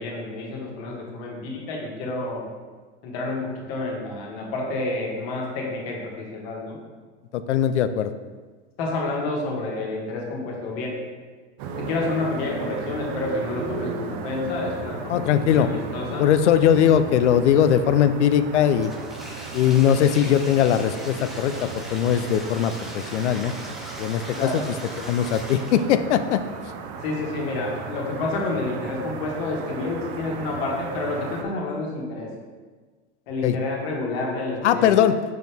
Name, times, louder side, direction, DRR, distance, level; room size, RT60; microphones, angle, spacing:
voice 1, 0.0-2.5 3.0-6.8 8.8-11.0 11.8-16.2 24.3-24.6 27.0-32.3 33.3-35.0, left 2 dB, 60° left, -1 dB, 1.7 m, -29 dB
voice 2, 7.3-8.1 15.1-15.7 16.2-18.9 19.5-23.5 24.0-24.6 25.0-26.4 33.4-33.6 34.6-35.2, left 9 dB, 85° left, 11 dB, 0.5 m, -20 dB
sound 1, 11.6-31.4, right 5 dB, 50° right, 0.7 m, -36 dB
Bathtub (filling or washing), 18.8-26.0, equal, ahead, 0.8 m, -40 dB
6.2 x 4.4 x 3.5 m, 1.4 s
hypercardioid pair, 105°, 34 cm